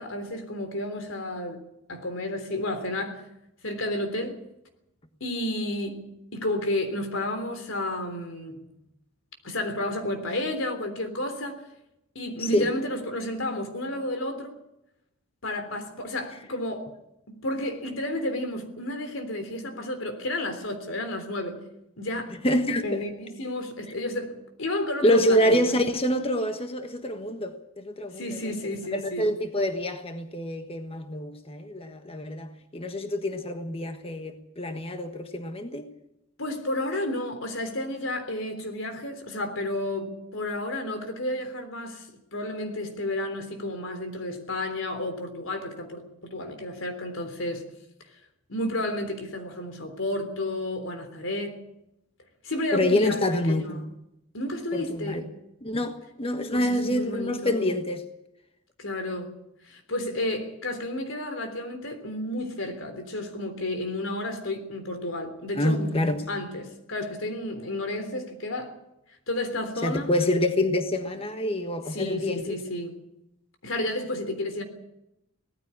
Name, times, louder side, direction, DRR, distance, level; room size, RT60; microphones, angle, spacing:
voice 1, 0.0-1.6 1.9-3.2 3.6-4.4 5.2-8.7 9.4-11.6 12.2-14.5 15.4-16.9 17.3-21.6 22.0-22.4 22.8-25.7 28.2-29.3 36.4-47.6 48.5-51.6 52.4-53.8 54.3-55.2 56.5-57.8 58.8-59.4 59.7-68.7 69.3-70.1 71.9-73.0 73.6-74.6, left 1 dB, 80° left, 3.6 m, -31 dB
voice 2, 22.4-23.0 25.0-35.9 52.7-53.9 54.7-55.2 55.6-58.0 65.5-66.2 69.8-72.6, left 1 dB, 30° left, 1.4 m, -26 dB
18.5 x 14.5 x 9.8 m
head